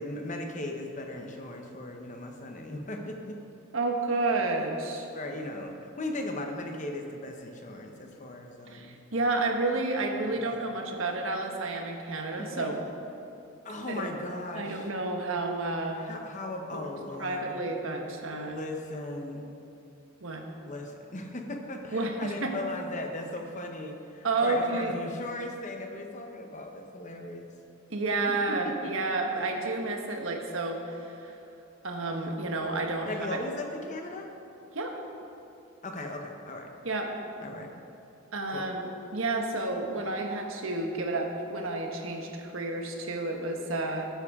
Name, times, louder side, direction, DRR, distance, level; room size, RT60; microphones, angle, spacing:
voice 1, 0.0-3.4 5.1-9.0 10.3-10.9 12.4-12.7 13.6-14.9 15.9-17.6 18.3-19.4 20.6-27.5 28.3-28.7 33.1-34.3 35.8-36.7 37.4-37.7 38.5-38.7, left 1 dB, 35° left, 3 dB, 1.0 m, -38 dB
voice 2, 3.7-5.1 8.7-12.8 13.9-14.0 14.5-16.0 16.7-16.9 17.2-18.6 20.2-20.4 21.9-22.5 24.2-24.9 27.9-31.3 31.8-33.3 34.7-35.0 36.8-37.1 38.3-44.1, right 2 dB, 65° right, 2 dB, 1.3 m, -30 dB
13.5 x 9.6 x 3.7 m, 2.9 s
head